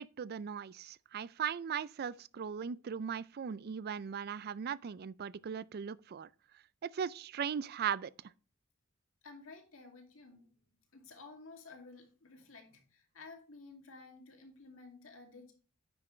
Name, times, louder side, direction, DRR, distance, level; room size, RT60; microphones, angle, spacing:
voice 1, 0.0-6.3 6.8-8.1, right 7 dB, 50° right, 0.4 m, -38 dB
voice 2, 9.2-10.5 10.9-15.5, left 3 dB, 70° left, 2.4 m, -53 dB
9.7 x 6.2 x 3.2 m
head